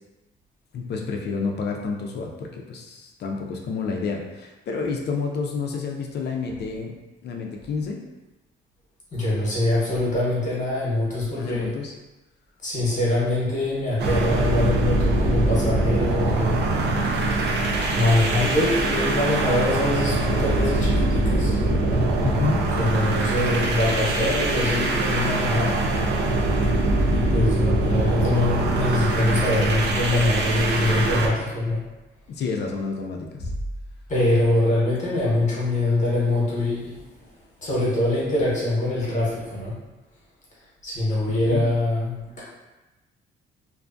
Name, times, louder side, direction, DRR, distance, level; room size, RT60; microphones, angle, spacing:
voice 1, 0.7-6.9 7.2-8.0 11.3-11.9 22.2-22.7 32.3-33.5 41.3-41.6, left 4 dB, 55° left, 1 dB, 0.4 m, -29 dB
voice 2, 9.1-11.7 12.6-17.6 17.9-21.6 22.8-25.8 27.1-31.8 34.1-37.3 37.6-39.8 40.8-42.4, left 2 dB, 40° left, -7 dB, 1.0 m, -24 dB
sound 1, 14.0-31.3, right 2 dB, 60° right, 0.5 m, -23 dB
2.6 x 2.2 x 2.5 m, 1.1 s
cardioid pair, 90°, 20 cm